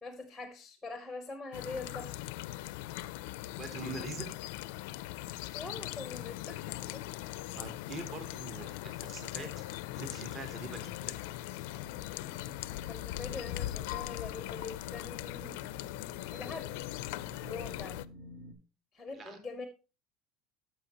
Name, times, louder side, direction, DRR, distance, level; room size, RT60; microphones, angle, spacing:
voice 1, 0.0-2.2 5.5-7.0 12.9-15.6 16.3-16.7 17.4-18.0 18.9-19.7, left 3 dB, ahead, 8 dB, 0.8 m, -43 dB
sound 1, 1.5-18.1, left 16 dB, 70° left, 0.4 m, -40 dB
voice 2, 3.5-4.3 7.6-11.1 19.1-19.4, right 3 dB, 25° right, 7 dB, 1.0 m, -44 dB
sound 2, 7.2-18.5, equal, 80° right, 2.0 m, -55 dB
12.5 x 6.1 x 2.9 m, 0.31 s
cardioid pair, 175°, 0 cm